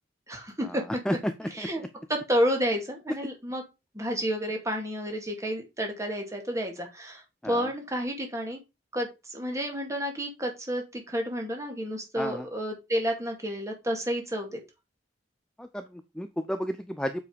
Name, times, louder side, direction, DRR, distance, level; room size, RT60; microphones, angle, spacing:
voice 1, 0.3-1.0 1.5-1.8 2.1-3.6 3.9-8.6 8.9-14.6, equal, 15° right, 2 dB, 2.1 m, -30 dB
voice 2, 1.1-1.7 7.4-7.7 12.2-12.5 15.6-17.2, equal, 5° left, 8 dB, 0.5 m, -32 dB
7.4 x 4.9 x 5.0 m, 0.25 s
head